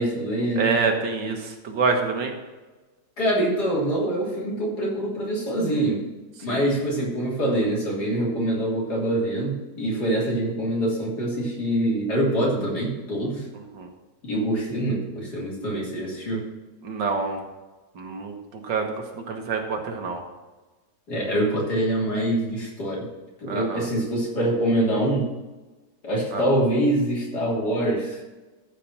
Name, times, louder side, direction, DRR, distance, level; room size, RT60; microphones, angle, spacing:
voice 1, 0.0-0.7 3.2-6.0 6.4-13.5 14.2-16.4 21.1-23.1 23.4-25.3 26.0-28.2, right 1 dB, 60° left, -4 dB, 3.8 m, -25 dB
voice 2, 0.6-2.3 6.5-6.6 13.7-13.9 16.8-17.4 18.0-18.9 19.3-20.2 23.5-23.9 26.3-26.4, right 4 dB, 90° right, 3 dB, 2.1 m, -26 dB
14.0 x 5.0 x 6.0 m, 1.2 s
omnidirectional pair, 1.9 m